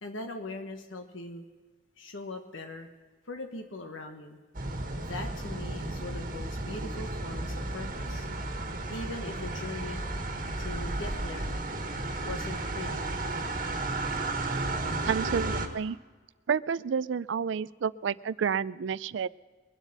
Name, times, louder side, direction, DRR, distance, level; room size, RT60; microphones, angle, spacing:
voice 1, 0.0-1.4 2.0-2.9 3.2-4.4 5.1-8.3 8.9-10.1 10.6-11.6 12.2-13.1, left 2 dB, 85° left, 4 dB, 1.3 m, -40 dB
sound 1, 4.5-15.7, right 2 dB, 45° right, 1.5 m, -33 dB
voice 2, 15.0-16.0 16.5-19.3, right 6 dB, 70° right, 19 dB, 0.4 m, -30 dB
22.5 x 8.2 x 6.0 m, 1.4 s
head